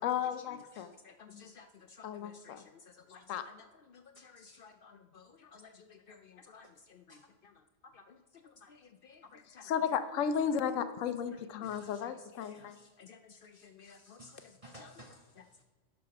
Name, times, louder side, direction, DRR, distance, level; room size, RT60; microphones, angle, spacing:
voice 1, 0.0-0.9 1.2-1.4 2.0-2.6 3.3-3.5 9.6-12.8, left 8 dB, 85° left, 10 dB, 1.0 m, -34 dB
voice 2, 0.8-2.6 3.1-3.2 3.5-3.6 3.9-7.2 7.8-8.2 8.4-9.7 12.5-12.7 13.0-14.2, left 5 dB, 60° left, 7 dB, 0.6 m, -56 dB
voice 3, 4.1-4.7 6.6-6.7 7.1-7.3 11.6-12.1 12.3-12.9 13.3-15.6, equal, 35° right, 1 dB, 0.7 m, -58 dB
11.0 x 5.1 x 5.8 m, 1.3 s
omnidirectional pair, 1.3 m